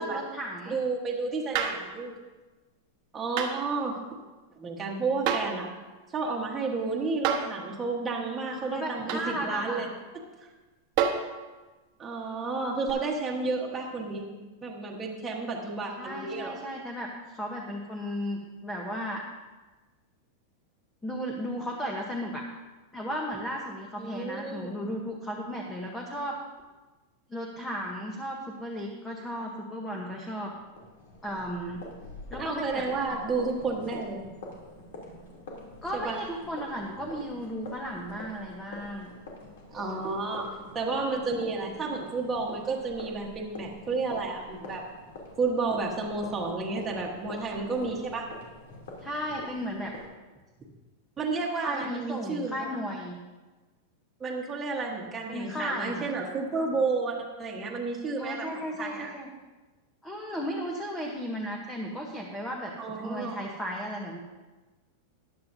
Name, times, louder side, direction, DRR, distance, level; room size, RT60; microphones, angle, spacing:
voice 1, 0.0-0.8 8.7-9.9 16.0-19.2 21.0-22.4 22.9-26.3 27.3-30.5 31.2-31.8 32.3-32.9 35.8-39.1 49.0-49.9 51.6-53.2 55.3-56.0 58.2-59.3 60.0-62.7 63.0-64.2, equal, 5° left, -1 dB, 0.9 m, -35 dB
voice 2, 0.7-2.1 3.1-4.0 4.6-5.7 6.1-9.9 12.0-14.3 14.6-16.6 24.0-24.8 32.4-34.2 35.9-36.2 39.7-40.5 40.7-44.8 45.4-48.3 51.2-52.8 54.2-58.5 58.8-59.1 62.8-63.4, right 3 dB, 15° right, -3 dB, 1.3 m, -31 dB
sound 1, 1.5-1.9 3.4-3.6 5.2-5.6 7.2-7.6 9.1-9.3 11.0-11.3 12.9-13.0, right 8 dB, 40° right, 1.0 m, -28 dB
sound 2, 30.5-50.1, left 2 dB, 75° left, 2.8 m, -45 dB
14.5 x 10.5 x 2.7 m, 1.2 s
supercardioid pair, 170°, 0 cm